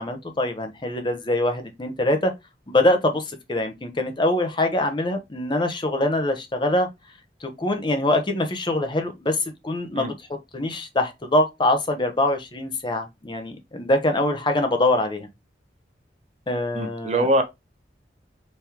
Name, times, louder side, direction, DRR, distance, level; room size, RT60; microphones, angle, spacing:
voice 1, 0.0-2.3 2.7-6.9 7.4-10.1 10.5-15.3 16.5-17.3, left 1 dB, 25° left, 0.6 m, -24 dB
voice 2, 16.7-17.4, right 1 dB, 35° right, 0.6 m, -22 dB
3.5 x 3.2 x 2.8 m
head